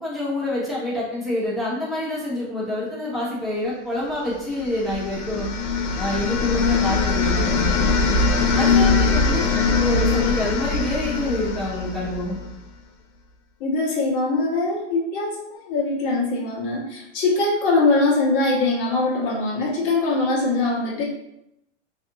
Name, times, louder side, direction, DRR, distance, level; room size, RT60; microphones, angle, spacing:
voice 1, 0.0-5.5 6.0-8.0 8.5-12.4, left 1 dB, ahead, -9 dB, 1.0 m, -27 dB
sound 1, 4.5-12.5, left 4 dB, 80° left, 0.6 m, -22 dB
voice 2, 13.6-21.0, left 3 dB, 45° left, -4 dB, 0.9 m, -22 dB
2.6 x 2.6 x 2.6 m, 0.82 s
supercardioid pair, 130°, 37 cm